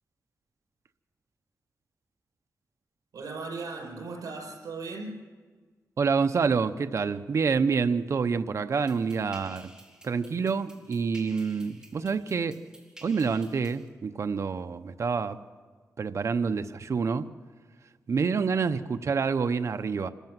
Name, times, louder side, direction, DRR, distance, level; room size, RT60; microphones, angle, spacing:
voice 1, 3.1-5.2, right 3 dB, 85° right, 0 dB, 5.4 m, -37 dB
voice 2, 6.0-9.7 10.0-12.6 13.0-15.4 16.0-17.3 18.1-20.1, right 5 dB, 55° right, 9 dB, 0.8 m, -27 dB
sound 1, 8.7-13.9, right 1 dB, 10° right, 3.3 m, -53 dB
26.5 x 13.5 x 7.5 m, 1.5 s
wide cardioid pair, 100°, 6 cm